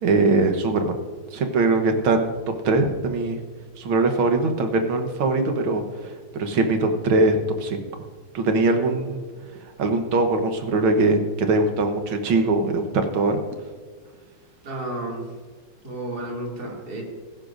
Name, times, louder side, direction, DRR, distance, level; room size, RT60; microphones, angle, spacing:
voice 1, 0.0-1.0 1.3-2.3 2.6-3.4 3.8-7.8 8.3-9.2 9.8-13.4, right 3 dB, 70° right, 6 dB, 2.0 m, -21 dB
voice 2, 14.6-15.2 15.8-17.0, right 1 dB, 45° right, -2 dB, 3.0 m, -31 dB
16.5 x 15.0 x 2.6 m, 1.5 s
omnidirectional pair, 2.4 m